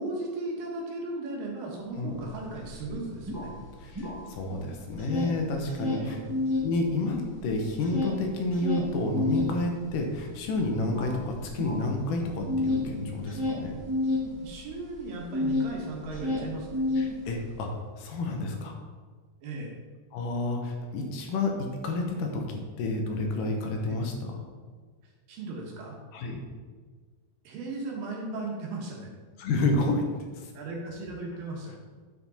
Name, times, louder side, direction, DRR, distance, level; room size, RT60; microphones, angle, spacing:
voice 1, 0.0-3.5 5.9-6.3 14.4-16.8 19.4-19.8 23.9-24.0 25.3-26.0 27.4-29.1 30.5-31.8, right 2 dB, 70° right, -1 dB, 3.0 m, -36 dB
sound 1, 2.2-2.3 2.6-4.6 4.9-6.7 7.1-15.7 16.0-17.6, left 2 dB, 10° right, 0.9 m, -30 dB
voice 2, 3.8-6.2 6.6-13.7 17.0-17.7 18.0-18.8 20.1-24.4 26.1-26.4 29.4-30.0, left 2 dB, 70° left, 2 dB, 2.5 m, -30 dB
9.4 x 5.1 x 4.2 m, 1.5 s
omnidirectional pair, 4.3 m